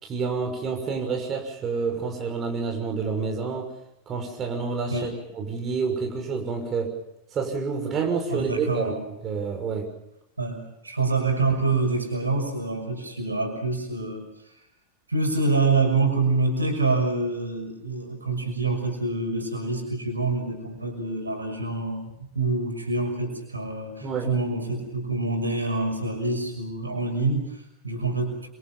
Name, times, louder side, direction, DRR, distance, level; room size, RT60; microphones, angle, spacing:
voice 1, 0.0-3.7 4.1-7.0 7.3-9.9 24.0-24.3, right 5 dB, 25° right, 3 dB, 6.2 m, -28 dB
voice 2, 8.3-9.0 10.4-14.3 15.1-28.5, right 3 dB, 80° right, 5 dB, 6.1 m, -26 dB
26.5 x 26.0 x 5.8 m, 0.82 s
figure-of-eight pair, 90°, 0 cm